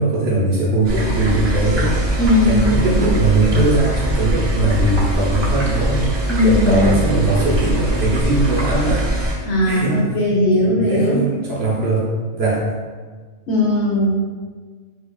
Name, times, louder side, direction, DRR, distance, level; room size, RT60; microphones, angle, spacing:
voice 1, 0.0-2.2 2.4-6.1 6.4-10.0 10.5-12.1 12.3-12.7, right 2 dB, 55° right, -6 dB, 0.9 m, -20 dB
sound 1, 0.8-9.3, right 1 dB, 25° right, 0.6 m, -21 dB
voice 2, 2.2-3.1 6.2-7.0 9.4-11.2 13.5-14.2, left 1 dB, 60° left, -4 dB, 0.9 m, -18 dB
4.4 x 2.4 x 2.3 m, 1.5 s
omnidirectional pair, 1.4 m